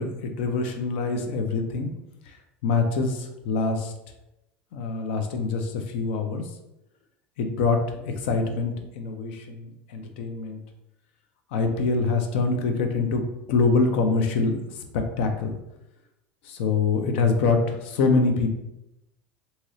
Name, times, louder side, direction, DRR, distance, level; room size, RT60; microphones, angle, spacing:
voice 1, 0.0-1.9 2.3-2.4 2.6-3.9 4.7-6.4 7.4-10.6 11.5-15.6 16.4-18.5, left 4 dB, 75° left, 5 dB, 0.5 m, -25 dB
2.9 x 2.8 x 2.6 m, 0.90 s
hypercardioid pair, 90°, 6 cm